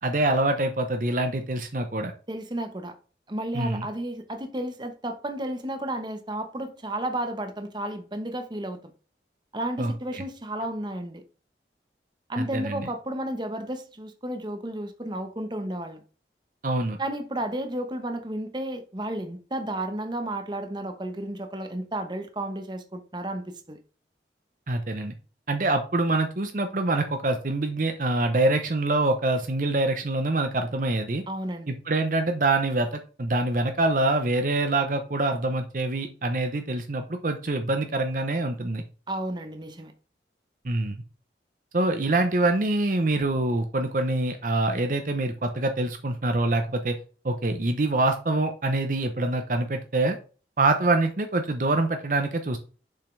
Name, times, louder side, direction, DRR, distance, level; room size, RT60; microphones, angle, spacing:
voice 1, 0.0-2.1 3.5-3.9 9.8-10.2 12.4-12.9 16.6-17.0 24.7-25.1 25.5-31.2 31.7-38.8 40.6-41.0 41.7-47.0 47.2-50.2 50.6-52.6, right 2 dB, 50° right, 0.7 m, -25 dB
voice 2, 2.3-2.9 3.3-8.9 9.5-11.2 12.3-16.0 17.0-23.8 31.3-31.7 39.1-39.9, right 1 dB, 25° right, 1.0 m, -32 dB
7.0 x 5.6 x 3.2 m
head